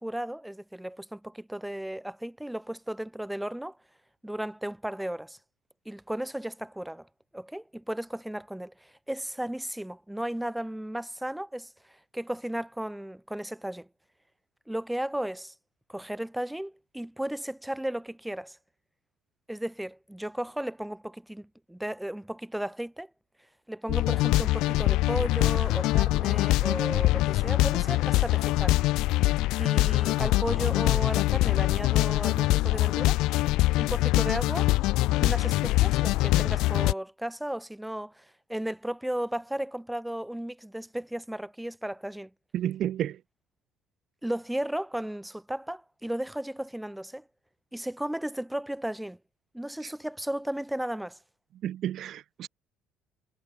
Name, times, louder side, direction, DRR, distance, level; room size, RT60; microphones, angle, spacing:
voice 1, 0.0-3.8 4.2-5.4 5.8-7.1 7.3-13.9 14.7-15.5 15.9-18.6 19.5-23.1 23.7-28.8 29.6-33.2 33.7-34.7 35.2-42.3 44.2-47.2 47.7-49.2 49.5-51.2, right 1 dB, 5° right, 5.0 m, -35 dB
sound 1, 23.9-36.9, left 18 dB, 75° left, 1.1 m, -24 dB
voice 2, 42.5-43.2 49.8-49.9 51.6-52.5, right 11 dB, 55° right, 1.2 m, -31 dB
cardioid pair, 120°, 0 cm